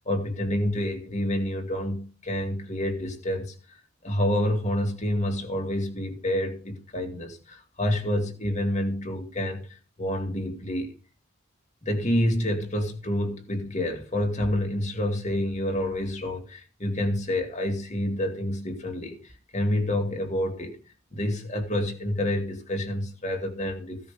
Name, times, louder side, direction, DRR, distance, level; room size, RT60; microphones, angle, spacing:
voice 1, 0.0-3.5 4.0-10.9 11.8-20.8 21.1-24.0, left 1 dB, 35° left, 2.2 m, -28 dB
16.0 x 5.7 x 5.0 m
head